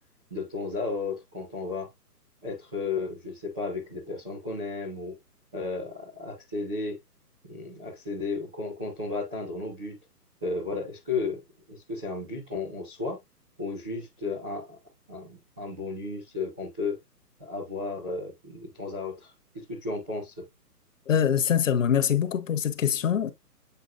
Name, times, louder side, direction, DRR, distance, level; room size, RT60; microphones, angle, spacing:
voice 1, 0.3-1.9 2.4-5.1 5.5-7.0 7.4-10.0 10.4-11.4 11.7-13.2 13.6-14.8 15.1-17.0 17.4-20.3, left 3 dB, 5° left, 0.5 m, -34 dB
voice 2, 21.1-23.3, left 8 dB, 50° left, 1.1 m, -24 dB
8.1 x 4.9 x 2.5 m
hypercardioid pair, 150°, 48 cm